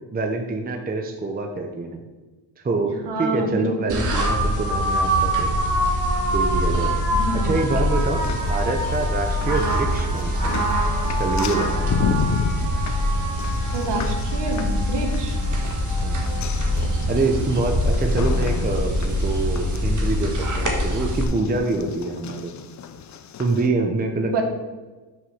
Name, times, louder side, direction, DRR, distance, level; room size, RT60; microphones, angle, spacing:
voice 1, 0.1-2.0 2.6-5.5 6.3-6.9 7.4-8.2 8.5-10.6 11.2-12.0 16.0-16.2 17.1-22.5 23.4-24.4, right 3 dB, 20° right, 4 dB, 0.6 m, -25 dB
voice 2, 3.0-3.7 7.1-7.6 13.7-15.4 24.1-24.4, right 2 dB, 55° right, 3 dB, 1.5 m, -27 dB
sound 1, 3.9-21.2, equal, 40° right, 1.6 m, -23 dB
sound 2, 8.0-23.7, left 7 dB, 40° left, 0.5 m, -33 dB
6.4 x 4.8 x 6.3 m, 1.2 s
cardioid pair, 125°, 49 cm